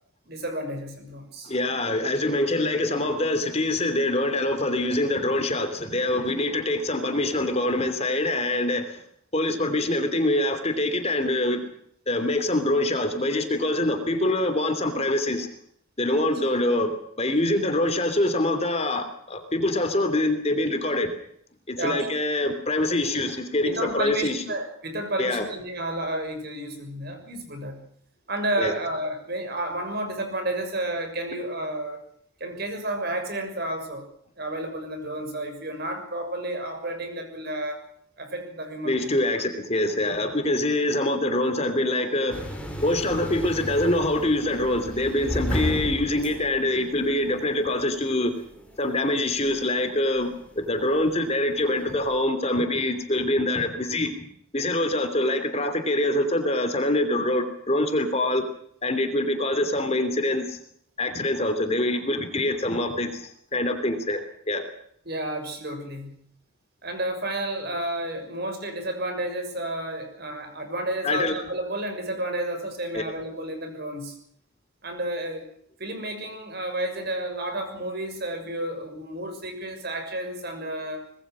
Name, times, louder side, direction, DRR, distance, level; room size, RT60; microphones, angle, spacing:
voice 1, 0.3-1.5 21.8-22.1 23.6-27.8 28.3-32.0 32.4-34.1 34.4-37.8 38.2-39.1 65.0-66.1 66.8-74.1 74.8-75.4 75.8-81.0, right 1 dB, 50° right, 6 dB, 6.6 m, -31 dB
voice 2, 1.4-9.0 9.3-11.6 12.1-15.5 16.0-21.1 21.7-24.4 25.2-25.5 28.6-28.7 38.8-42.5 42.8-48.3 48.8-50.3 50.5-54.3 54.5-58.4 58.8-60.6 61.0-64.6 71.0-71.3 72.9-73.0, left 1 dB, 30° left, 8 dB, 3.0 m, -25 dB
sound 1, 42.3-52.2, equal, 5° left, 5.3 m, -35 dB
25.0 x 20.5 x 6.3 m, 0.67 s
head